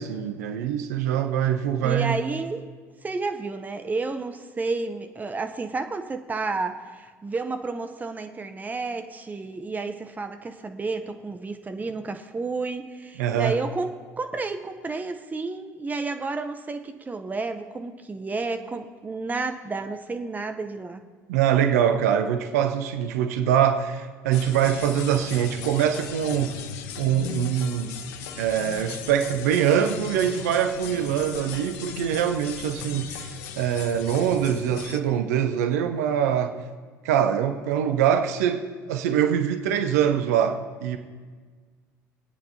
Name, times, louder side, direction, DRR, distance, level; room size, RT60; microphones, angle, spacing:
voice 1, 0.0-2.2 13.2-13.6 21.3-26.5 27.0-27.9 28.4-36.5 37.0-41.0, right 9 dB, 65° right, 8 dB, 0.7 m, -24 dB
voice 2, 1.8-2.7 3.0-21.1, right 3 dB, 20° right, 7 dB, 0.8 m, -31 dB
sound 1, 24.3-35.0, left 9 dB, 65° left, 0.7 m, -38 dB
24.5 x 9.1 x 2.8 m, 1.5 s
figure-of-eight pair, 60°, 9 cm